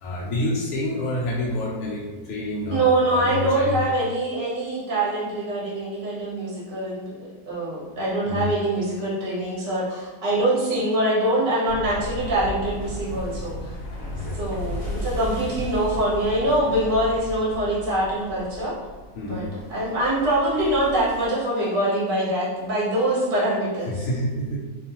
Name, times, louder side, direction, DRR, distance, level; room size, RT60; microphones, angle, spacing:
voice 1, 0.0-3.8 8.2-8.5 14.1-14.4 19.1-19.5 23.8-24.6, left 1 dB, 85° left, -4 dB, 0.6 m, -28 dB
voice 2, 2.7-13.6 14.3-18.7 19.2-23.9, right 1 dB, 45° right, -7 dB, 0.7 m, -24 dB
sound 1, 11.7-21.3, left 1 dB, 60° left, 0.9 m, -35 dB
2.5 x 2.4 x 2.8 m, 1.3 s
omnidirectional pair, 1.8 m